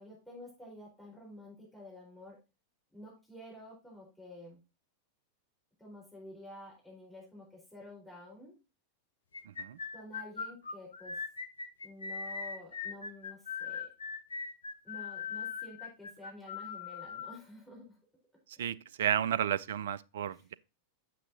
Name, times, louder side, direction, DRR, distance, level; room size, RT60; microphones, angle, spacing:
voice 1, 0.0-2.4 2.9-4.6 5.8-8.5 9.9-11.2 11.8-13.9 14.8-18.0 20.3-20.4, left 1 dB, ahead, 4.1 m, -50 dB
sound 1, 9.3-17.4, left 5 dB, 70° left, 0.6 m, -40 dB
voice 2, 9.5-9.8 18.6-20.5, right 9 dB, 60° right, 0.3 m, -32 dB
9.2 x 7.1 x 2.7 m
figure-of-eight pair, 90°, 0 cm